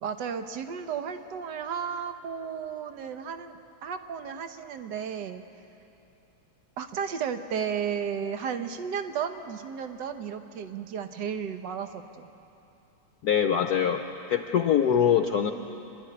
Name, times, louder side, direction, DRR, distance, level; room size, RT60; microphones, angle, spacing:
voice 1, 0.0-5.4 6.8-12.3, right 7 dB, 60° right, 8 dB, 1.6 m, -33 dB
voice 2, 13.2-15.5, left 8 dB, 65° left, 6 dB, 1.1 m, -23 dB
28.0 x 12.5 x 9.9 m, 2.9 s
omnidirectional pair, 2.2 m